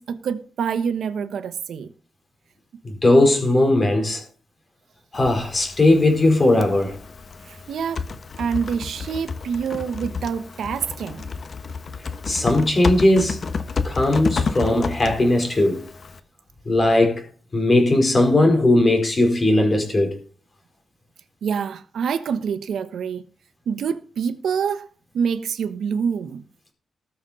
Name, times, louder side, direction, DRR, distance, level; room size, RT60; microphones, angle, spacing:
voice 1, 0.0-1.9 7.4-8.0 8.4-11.3 21.4-23.2 23.7-24.9 25.1-26.4, right 6 dB, 90° right, 1.1 m, -26 dB
voice 2, 2.8-4.2 5.1-7.0 12.3-13.4 13.8-15.9 16.6-17.2 17.5-20.1, left 1 dB, 30° left, 3.9 m, -18 dB
Typing, 5.1-16.2, left 5 dB, 50° left, 1.1 m, -31 dB
19.5 x 7.0 x 4.1 m
wide cardioid pair, 140°, 0 cm